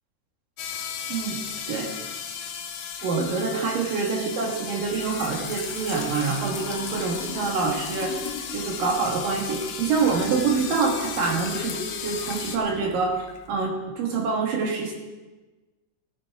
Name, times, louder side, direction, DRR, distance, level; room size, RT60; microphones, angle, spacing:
sound 1, 0.6-12.6, left 7 dB, 70° left, 2.4 m, -35 dB
voice 1, 3.0-14.9, right 4 dB, 60° right, 0 dB, 2.6 m, -26 dB
Trickle dribble / Fill (with liquid), 4.8-13.5, left 5 dB, 85° left, 1.5 m, -39 dB
14.5 x 14.0 x 4.6 m, 1.2 s
omnidirectional pair, 5.2 m